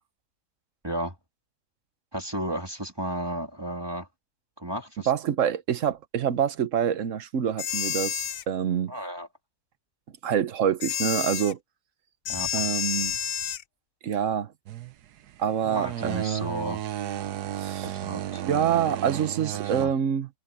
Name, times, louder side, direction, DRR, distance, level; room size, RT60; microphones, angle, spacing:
voice 1, 0.8-1.1 2.1-4.1 4.6-5.1 8.9-9.3 12.3-12.7 15.7-16.8 17.8-18.4 19.6-19.9, right 1 dB, 15° right, 2.2 m, -33 dB
voice 2, 5.1-8.9 10.2-11.6 12.5-13.2 14.0-14.5 15.4-16.5 17.6-18.0 18.4-20.3, right 8 dB, 55° right, 1.3 m, -26 dB
sound 1, 7.6-8.4 10.8-11.5 12.3-13.6, left 10 dB, 75° left, 0.5 m, -30 dB
sound 2, 14.7-19.9, right 11 dB, 85° right, 1.3 m, -34 dB
omnidirectional pair, 1.6 m